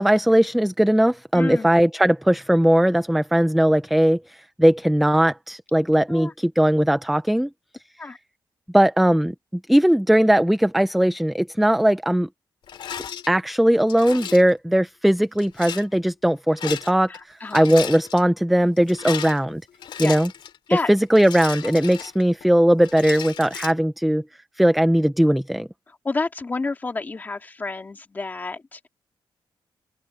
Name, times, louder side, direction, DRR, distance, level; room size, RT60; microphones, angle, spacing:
voice 1, 0.0-7.5 8.7-9.3 9.7-12.3 13.3-19.6 20.0-20.3 20.7-24.2 24.6-25.7, right 1 dB, ahead, 0.4 m, -19 dB
voice 2, 1.3-1.7 6.1-6.3 8.0-8.2 17.1-17.7 20.0-20.2 20.7-20.9 25.9-28.9, left 3 dB, 20° left, 2.0 m, -30 dB
Rattle, 12.7-13.3 13.9-14.5 15.4-15.9 16.5-17.2 17.4-18.2 18.8-20.6 21.2-22.5 22.8-23.7, left 8 dB, 90° left, 2.5 m, -35 dB
open air
wide cardioid pair, 180°, 8 cm